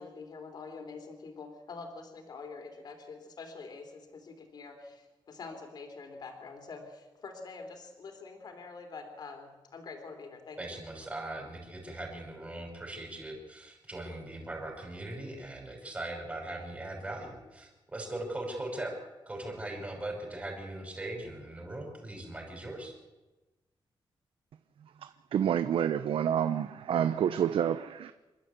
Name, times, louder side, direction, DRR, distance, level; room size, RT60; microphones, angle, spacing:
voice 1, 0.0-10.8, left 4 dB, 50° left, 3.2 m, -46 dB
voice 2, 10.6-18.9 19.3-22.9, right 1 dB, 15° right, 5.5 m, -40 dB
voice 3, 25.0-28.1, right 9 dB, 85° right, 0.8 m, -28 dB
27.5 x 12.5 x 8.2 m
wide cardioid pair, 180°, 9 cm